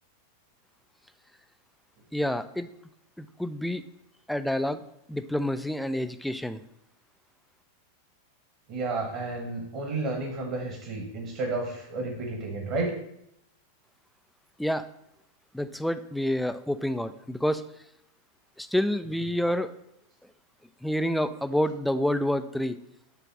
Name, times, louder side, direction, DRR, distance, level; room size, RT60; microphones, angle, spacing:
voice 1, 2.1-2.7 3.2-3.8 4.3-4.8 5.1-6.6 14.6-14.9 15.5-17.6 18.6-19.7 20.8-22.8, equal, ahead, 11 dB, 0.3 m, -28 dB
voice 2, 8.7-12.9, right 3 dB, 45° right, 1 dB, 1.4 m, -31 dB
6.9 x 3.3 x 6.1 m, 0.78 s
figure-of-eight pair, 90°, 0 cm